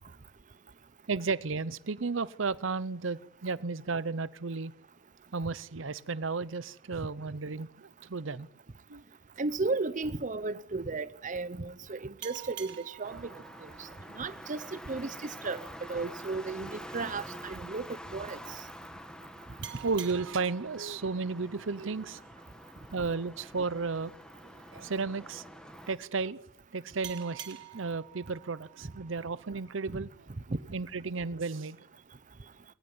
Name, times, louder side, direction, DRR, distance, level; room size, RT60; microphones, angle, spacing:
voice 1, 1.1-4.7 5.3-8.5 8.9-9.0 13.1-13.2 19.8-22.2 22.9-24.2 24.7-25.4 25.9-26.4 26.7-30.3 30.7-31.8, right 4 dB, 85° right, 0.8 m, -33 dB
voice 2, 9.4-13.3 13.6-13.9 14.1-15.6 15.9-18.4 29.9-30.1 30.5-30.6, right 3 dB, 40° right, 0.8 m, -34 dB
sound 1, 12.2-15.4 19.6-22.9 27.0-30.0, right 12 dB, 65° right, 1.8 m, -49 dB
sound 2, 13.0-26.0, equal, 5° left, 1.7 m, -47 dB
21.0 x 18.0 x 9.6 m
head